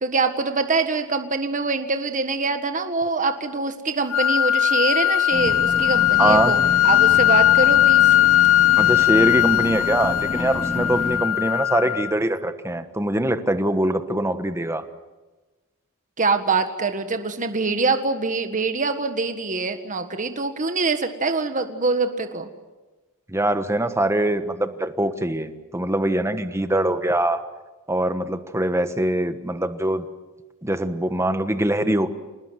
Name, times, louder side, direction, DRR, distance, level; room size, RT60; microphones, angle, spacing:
voice 1, 0.0-8.1 16.2-22.5, right 3 dB, 35° right, 7 dB, 1.6 m, -24 dB
sound 1, 4.1-12.1, left 13 dB, 70° left, 1.0 m, -19 dB
sound 2, 5.3-11.2, left 2 dB, 35° left, 2.6 m, -31 dB
voice 2, 6.2-6.5 8.8-14.8 23.3-27.4 27.9-30.0 30.6-32.1, right 1 dB, 15° right, 9 dB, 1.3 m, -23 dB
27.5 x 19.5 x 8.1 m, 1.2 s
head